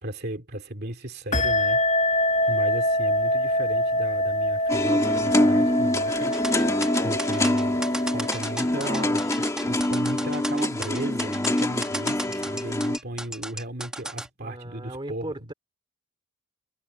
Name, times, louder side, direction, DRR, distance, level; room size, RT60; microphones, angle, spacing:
voice 1, 0.0-1.8 2.1-15.5, right 1 dB, 50° right, 2.6 m, -36 dB
sound 1, 1.3-9.5, left 1 dB, 35° left, 1.8 m, -25 dB
sound 2, 4.7-13.0, left 1 dB, 15° left, 1.6 m, -25 dB
sound 3, 6.3-14.3, right 1 dB, 5° right, 1.9 m, -35 dB
voice 2, 14.4-15.5, right 1 dB, 25° right, 3.0 m, -37 dB
head